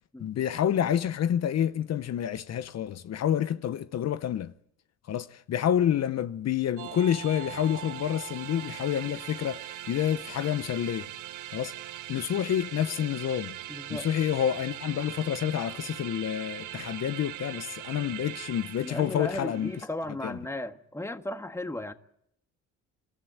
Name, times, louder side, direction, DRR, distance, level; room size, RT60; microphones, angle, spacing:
voice 1, 0.2-4.5 5.1-11.1 11.5-11.8 12.1-13.6 13.9-19.7 20.2-20.4, left 10 dB, 60° left, 0.8 m, -28 dB
sound 1, 6.8-19.9, right 14 dB, 85° right, 0.9 m, -41 dB
voice 2, 13.7-14.1 18.8-21.9, left 1 dB, 10° left, 1.5 m, -35 dB
27.5 x 13.5 x 9.4 m
cardioid pair, 90°, 30 cm